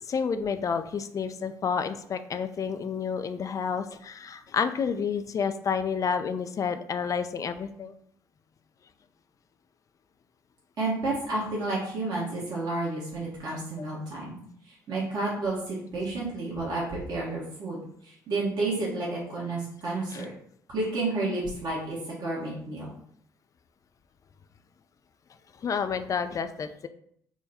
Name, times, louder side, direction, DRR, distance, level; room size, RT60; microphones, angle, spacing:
voice 1, 0.0-8.0 13.8-13.9 20.1-20.3 25.5-26.9, left 6 dB, 40° left, 9 dB, 0.4 m, -30 dB
voice 2, 10.8-14.3 14.9-17.8 18.0-20.3 20.7-22.9, right 2 dB, 50° right, -6 dB, 1.3 m, -31 dB
3.6 x 2.2 x 4.1 m, 0.67 s
hypercardioid pair, 55°, 9 cm